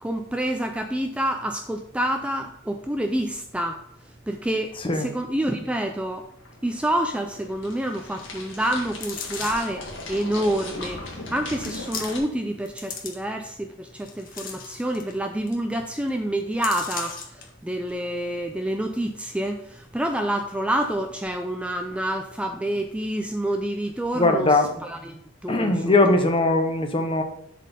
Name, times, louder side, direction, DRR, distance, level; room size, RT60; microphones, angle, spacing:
voice 1, 0.0-3.8 4.3-6.3 6.6-26.0, right 1 dB, 5° right, 4 dB, 0.4 m, -28 dB
voice 2, 4.8-5.1 24.1-24.7 25.5-27.2, left 2 dB, 25° left, 5 dB, 0.9 m, -20 dB
sound 1, 6.2-12.2, left 2 dB, 65° left, 1.8 m, -38 dB
sound 2, 8.9-9.8 10.6-10.7 11.5-12.4 12.7-13.5 14.0-15.2 15.5-15.6 15.9-16.1 16.6-17.4 17.9-18.0, left 6 dB, 45° left, 1.2 m, -36 dB
7.3 x 4.2 x 5.3 m, 0.73 s
head